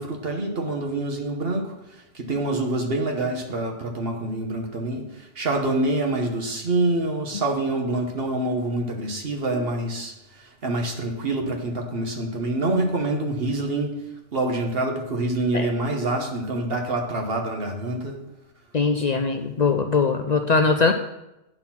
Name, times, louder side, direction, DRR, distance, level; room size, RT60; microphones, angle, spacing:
voice 1, 0.0-14.0 14.3-18.2, right 2 dB, 65° right, 2 dB, 1.5 m, -26 dB
voice 2, 18.7-20.9, left 4 dB, 55° left, 6 dB, 0.5 m, -21 dB
9.6 x 4.2 x 5.8 m, 0.92 s
omnidirectional pair, 1.1 m